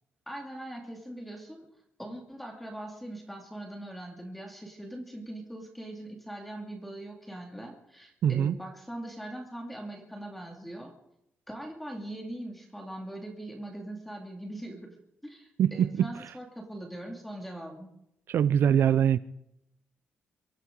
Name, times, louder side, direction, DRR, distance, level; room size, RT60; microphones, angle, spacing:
voice 1, 0.3-1.7 2.0-10.9 11.5-15.0 15.2-17.9, right 1 dB, 5° left, 2.1 m, -41 dB
voice 2, 8.2-8.5 15.6-16.1 18.3-19.2, right 9 dB, 65° right, 0.4 m, -23 dB
23.5 x 13.5 x 3.8 m
cardioid pair, 150°, 4 cm